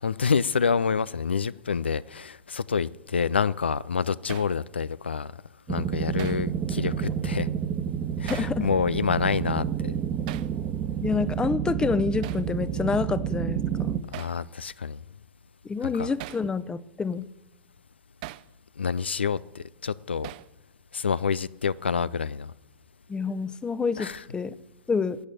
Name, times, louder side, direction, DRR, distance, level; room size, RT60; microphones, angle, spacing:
voice 1, 0.0-5.3 5.7-7.5 8.2-10.0 14.1-15.0 15.8-16.1 18.8-20.3 20.9-22.5 24.0-24.2, left 6 dB, 80° left, 0.4 m, -27 dB
Hammer, 4.3-4.6 6.2-6.5 8.3-8.6 10.3-10.5 12.2-12.5 14.1-14.4 16.2-16.5 18.2-18.5 20.2-20.5, right 18 dB, 50° right, 0.5 m, -39 dB
sound 1, 5.7-14.0, right 8 dB, 30° right, 1.1 m, -29 dB
voice 2, 8.3-8.7 11.0-13.9 15.6-17.3 23.1-24.5 24.9-25.2, left 5 dB, 15° left, 0.8 m, -28 dB
15.0 x 9.1 x 8.2 m
figure-of-eight pair, 95°, 6 cm